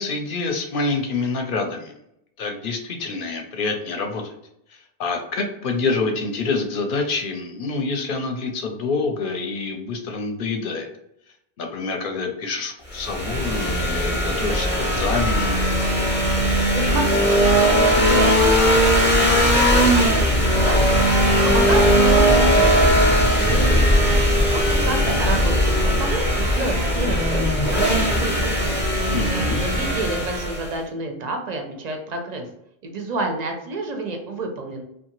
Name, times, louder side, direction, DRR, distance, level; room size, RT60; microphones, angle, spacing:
voice 1, 0.0-1.9 2.4-4.3 4.7-10.9 11.6-15.6 29.1-29.6, left 3 dB, 60° left, 4 dB, 0.7 m, -27 dB
sound 1, 12.9-30.8, equal, 15° left, 0.5 m, -19 dB
voice 2, 16.4-21.0 21.4-23.9 24.5-27.4 27.7-28.9 29.5-32.5 32.8-34.8, right 2 dB, 50° right, 3 dB, 0.5 m, -29 dB
2.8 x 2.3 x 2.9 m, 0.78 s
omnidirectional pair, 1.0 m